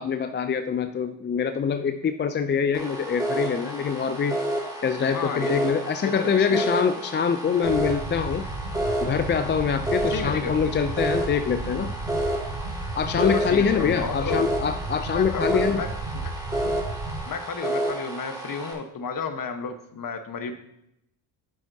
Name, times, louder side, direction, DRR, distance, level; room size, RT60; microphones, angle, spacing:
voice 1, 0.0-4.4 4.8-8.5 9.0-11.9 13.0-15.8, left 6 dB, 25° left, 9 dB, 0.4 m, -24 dB
sound 1, 2.7-18.7, right 1 dB, 5° right, 2.2 m, -30 dB
voice 2, 5.0-5.5 6.0-6.7 10.1-10.5 13.2-14.4 15.1-15.9 16.1-16.3 17.3-20.5, left 5 dB, 40° left, 8 dB, 1.2 m, -32 dB
sound 2, 7.6-17.2, right 2 dB, 70° right, 2.5 m, -34 dB
9.4 x 7.2 x 2.7 m, 0.80 s
supercardioid pair, 60°, 50 cm